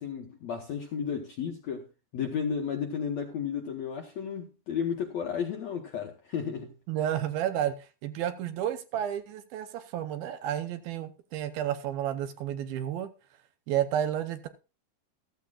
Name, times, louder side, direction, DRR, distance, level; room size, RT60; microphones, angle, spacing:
voice 1, 0.0-1.9 2.1-6.8, left 7 dB, 65° left, 1.7 m, -33 dB
voice 2, 6.9-13.1 13.7-14.5, right 10 dB, 75° right, 2.5 m, -31 dB
15.0 x 14.0 x 2.4 m
omnidirectional pair, 4.7 m